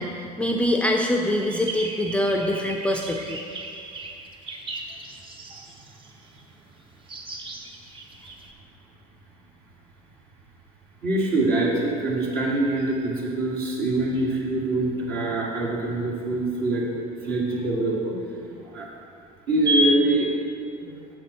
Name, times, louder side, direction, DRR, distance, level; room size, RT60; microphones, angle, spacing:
voice 1, 0.0-3.5, left 1 dB, 5° left, 2 dB, 0.6 m, -24 dB
sound 1, 1.4-6.4 7.1-8.5, right 3 dB, 25° right, 0.9 m, -39 dB
voice 2, 11.0-16.9 17.2-18.2 18.5-18.9 19.5-20.3 20.8-21.0, right 2 dB, 50° right, -4 dB, 2.0 m, -24 dB
7.4 x 7.0 x 4.3 m, 2.4 s
hypercardioid pair, 70°, 20 cm